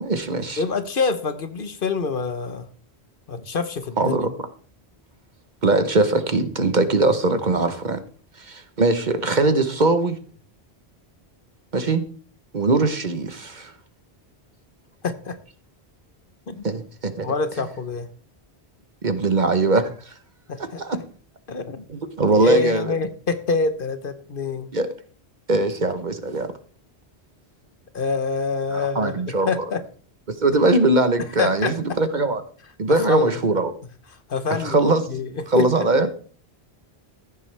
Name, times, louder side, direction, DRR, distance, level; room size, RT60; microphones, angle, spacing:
voice 1, 0.0-0.6 4.0-4.3 5.6-8.0 8.4-10.2 11.7-12.0 12.5-13.7 16.6-17.3 19.0-20.1 20.6-21.0 21.9-22.9 24.7-24.9 25.5-26.5 28.7-29.6 30.4-32.4 32.8-33.7 34.6-35.0 35.5-36.1, right 2 dB, 45° right, 10 dB, 1.1 m, -21 dB
voice 2, 0.6-2.7 3.3-4.2 15.0-15.4 16.5-16.6 17.2-18.1 20.5-21.0 21.5-21.9 22.3-24.7 27.9-29.1 29.5-29.8 31.2-31.8 32.9-33.3 34.3-34.8 35.1-35.9, left 4 dB, 55° left, 11 dB, 1.1 m, -26 dB
14.5 x 9.2 x 3.4 m, 0.43 s
omnidirectional pair, 1.1 m